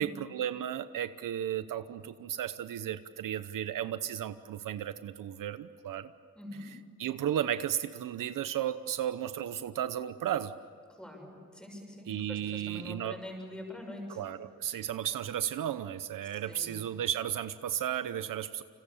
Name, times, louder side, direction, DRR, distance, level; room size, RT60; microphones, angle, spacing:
voice 1, 0.0-6.1 7.0-10.5 12.1-13.2 14.1-18.6, right 10 dB, 70° right, 12 dB, 0.9 m, -34 dB
voice 2, 6.3-6.7 10.9-14.2 16.2-16.7, left 1 dB, 5° left, 1 dB, 6.8 m, -44 dB
29.5 x 26.5 x 7.3 m, 2.2 s
wide cardioid pair, 165°, 34 cm